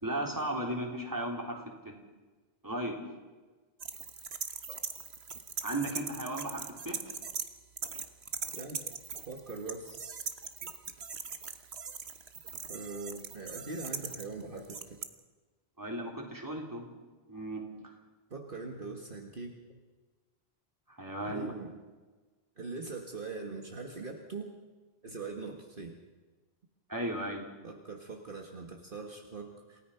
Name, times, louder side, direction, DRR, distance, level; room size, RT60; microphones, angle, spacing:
voice 1, 0.0-1.9 2.6-3.0 5.6-7.0 15.8-16.9 17.3-17.6 20.9-21.5 26.9-27.5, right 1 dB, 20° right, 0 dB, 3.7 m, -35 dB
sound 1, 3.8-7.5 7.8-15.0, right 6 dB, 80° right, 1.5 m, -40 dB
voice 2, 8.5-9.0 9.3-10.2 12.7-15.0 18.3-19.5 21.2-21.7 22.6-24.5 25.0-26.0 27.6-29.8, right 3 dB, 55° right, 2 dB, 1.9 m, -42 dB
28.0 x 17.5 x 5.8 m, 1.3 s
omnidirectional pair, 1.1 m